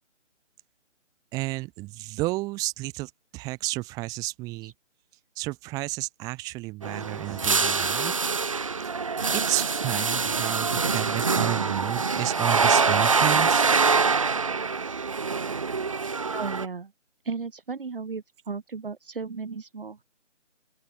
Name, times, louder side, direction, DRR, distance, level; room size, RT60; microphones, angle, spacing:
voice 1, 1.3-4.7 5.4-8.2 9.3-13.6, right 21 dB, 10° right, 5.4 m, -31 dB
sound 1, 6.8-16.7, right 5 dB, 25° right, 1.1 m, -25 dB
voice 2, 16.3-16.9 17.2-20.0, right 5 dB, 45° right, 4.5 m, -35 dB
open air
figure-of-eight pair, 165°, 37 cm